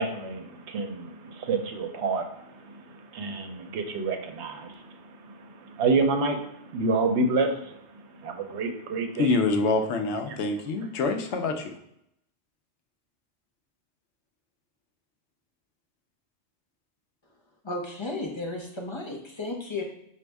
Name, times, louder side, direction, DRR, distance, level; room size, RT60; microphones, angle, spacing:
voice 1, 0.0-9.3, right 3 dB, 80° right, 4 dB, 0.9 m, -29 dB
voice 2, 9.1-11.8, left 3 dB, 80° left, 5 dB, 0.9 m, -26 dB
voice 3, 17.6-19.8, left 2 dB, 35° left, 0 dB, 0.5 m, -33 dB
5.1 x 2.7 x 3.3 m, 0.76 s
omnidirectional pair, 1.2 m